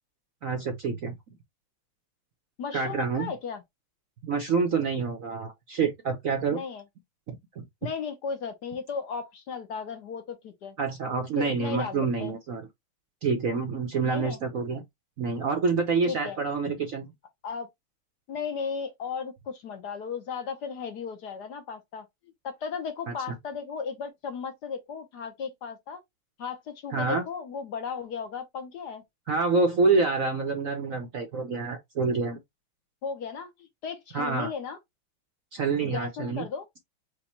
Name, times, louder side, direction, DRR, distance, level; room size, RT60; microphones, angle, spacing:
voice 1, 0.4-1.2 2.7-3.3 4.2-6.6 7.3-7.6 10.8-12.7 13.2-14.8 15.2-17.1 26.9-27.2 29.3-32.4 34.1-34.5 35.5-36.5, right 4 dB, 55° right, 0.9 m, -27 dB
voice 2, 2.6-3.6 6.5-6.8 7.8-10.8 11.4-12.3 14.0-14.4 16.1-16.4 17.4-17.7 18.3-22.1 22.4-26.0 26.4-29.0 33.0-34.8 35.8-36.7, left 6 dB, 60° left, 1.3 m, -35 dB
5.2 x 2.3 x 4.4 m
omnidirectional pair, 2.3 m